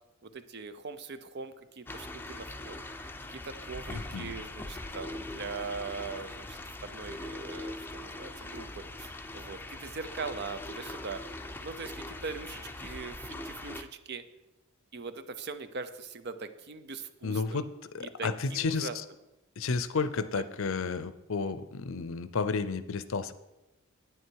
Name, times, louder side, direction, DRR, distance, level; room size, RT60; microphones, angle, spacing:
voice 1, 0.2-2.8 3.3-11.2 11.6-14.2 14.9-17.6 18.0-19.0 20.4-20.5, right 4 dB, 50° right, 11 dB, 0.7 m, -41 dB
sound 1, 1.9-13.8, left 2 dB, 10° left, 0.6 m, -41 dB
voice 2, 3.9-4.3 17.2-17.7 17.9-18.9 19.6-23.3, left 4 dB, 65° left, 13 dB, 0.6 m, -32 dB
9.5 x 9.4 x 4.6 m, 0.98 s
head